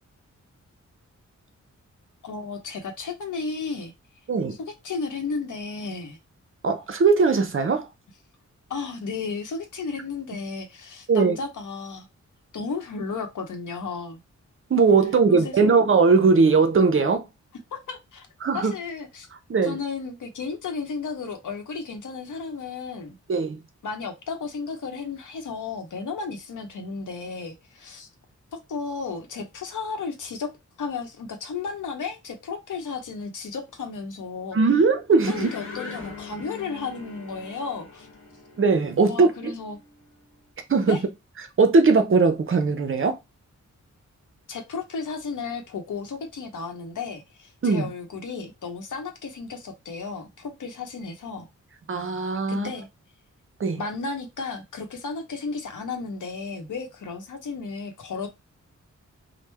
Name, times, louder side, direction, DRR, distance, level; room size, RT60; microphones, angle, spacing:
voice 1, 2.2-3.9 4.6-6.2 8.7-12.1 12.5-14.2 15.3-15.6 17.7-18.3 18.5-19.3 19.6-23.2 23.8-28.1 28.7-30.5 30.8-34.6 35.3-38.1 39.1-39.8 40.9-41.0 44.5-51.5 52.5-52.9 53.7-58.3, left 4 dB, 85° left, 0.8 m, -33 dB
voice 2, 6.6-7.9 11.1-11.4 14.7-17.3 18.4-18.7 19.5-19.8 23.3-23.6 34.5-35.5 38.6-39.6 40.7-41.0 41.6-43.2 47.6-47.9 51.9-52.7 53.6-53.8, right 4 dB, 45° right, 0.5 m, -20 dB
sound 1, 35.2-40.2, left 4 dB, 40° left, 1.1 m, -41 dB
3.1 x 2.1 x 3.3 m
wide cardioid pair, 150°, 30 cm